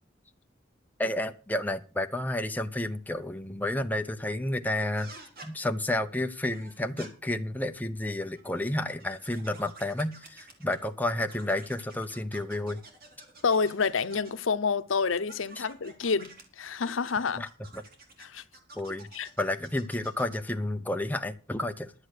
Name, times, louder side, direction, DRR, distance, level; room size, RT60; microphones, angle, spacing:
voice 1, 1.0-5.1 5.4-12.8 15.6-15.7 17.4-17.5 17.7-17.8 18.8-19.1 19.4-21.9, left 1 dB, 10° left, 0.8 m, -31 dB
sound 1, 5.0-5.5 6.5-7.1 8.1-10.9 11.2-14.5 15.1-16.4 17.1-20.5, right 3 dB, 50° right, 2.8 m, -51 dB
voice 2, 13.4-17.4 18.2-18.4 19.1-19.3, left 5 dB, 90° left, 0.8 m, -28 dB
11.5 x 7.7 x 6.5 m
head